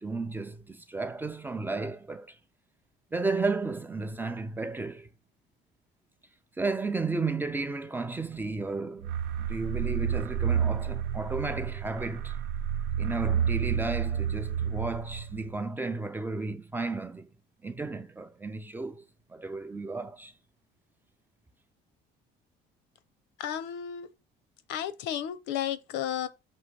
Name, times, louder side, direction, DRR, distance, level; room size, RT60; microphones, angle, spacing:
voice 1, 0.0-2.4 3.1-5.1 6.6-9.1 9.4-12.3 13.0-17.3 17.6-19.0 19.3-20.3, right 3 dB, 10° right, 0.4 m, -33 dB
sound 1, 9.0-15.6, right 8 dB, 90° right, 0.8 m, -30 dB
voice 2, 23.4-24.1 24.7-26.3, left 10 dB, 70° left, 0.8 m, -33 dB
6.2 x 3.0 x 5.7 m
cardioid pair, 170°, 19 cm